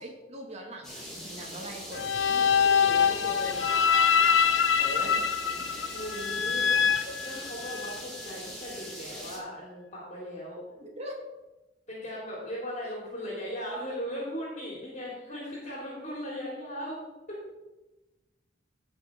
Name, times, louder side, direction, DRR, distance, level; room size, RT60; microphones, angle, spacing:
voice 1, 0.0-3.8 4.8-5.3 5.6-5.9 6.4-6.9 10.8-11.3, equal, 35° right, 1 dB, 2.4 m, -43 dB
sound 1, 0.8-9.4, equal, 5° left, 4.6 m, -42 dB
sound 2, 1.9-8.0, left 7 dB, 75° left, 0.7 m, -25 dB
voice 2, 2.3-3.7 5.8-6.7 7.2-10.6 11.9-17.4, equal, 40° left, -4 dB, 3.6 m, -38 dB
16.0 x 6.1 x 5.3 m, 1.1 s
head